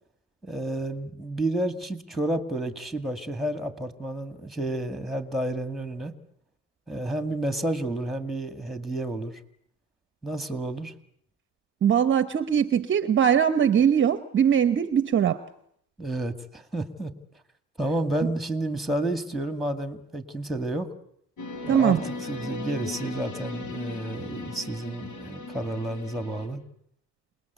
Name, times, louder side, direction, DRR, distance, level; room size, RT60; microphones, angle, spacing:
voice 1, 0.4-6.1 6.9-9.4 10.2-10.9 16.0-17.1 17.8-20.9 21.6-26.6, right 1 dB, ahead, 9 dB, 2.0 m, -30 dB
voice 2, 11.8-15.4 21.7-22.0, right 8 dB, 30° right, 12 dB, 1.0 m, -21 dB
sound 1, 21.4-26.5, left 3 dB, 60° left, 5.4 m, -37 dB
27.5 x 20.0 x 8.2 m, 0.70 s
cardioid pair, 130°, 38 cm